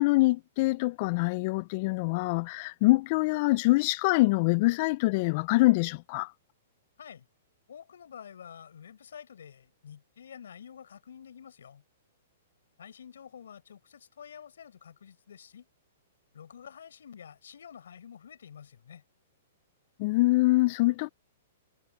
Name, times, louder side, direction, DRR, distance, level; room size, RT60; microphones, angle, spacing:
voice 1, 0.0-6.3 20.0-21.1, left 21 dB, 45° left, 0.5 m, -24 dB
voice 2, 7.7-11.8 12.8-15.7 16.3-19.0, left 8 dB, 80° left, 6.2 m, -49 dB
hypercardioid pair, 135°, 0 cm